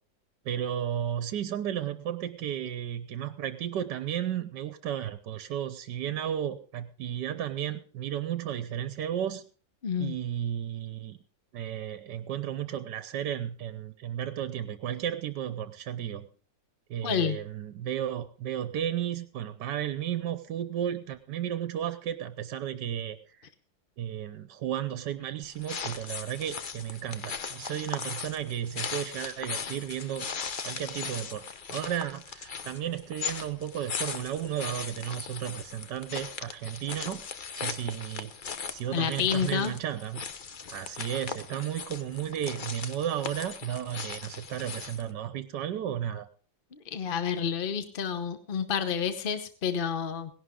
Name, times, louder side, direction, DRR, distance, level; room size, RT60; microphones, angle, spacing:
voice 1, 0.4-9.4 10.0-11.2 11.5-16.3 16.9-23.5 24.0-30.3 30.6-31.4 31.7-37.2 37.5-38.3 38.7-40.2 40.7-46.3, right 10 dB, 70° right, 12 dB, 1.3 m, -33 dB
voice 2, 9.8-10.2 17.0-17.4 38.9-39.7 46.9-50.3, left 7 dB, 45° left, 10 dB, 0.8 m, -29 dB
sound 1, 25.4-45.1, left 6 dB, 75° left, 0.4 m, -39 dB
18.0 x 11.0 x 3.7 m, 0.40 s
omnidirectional pair, 2.0 m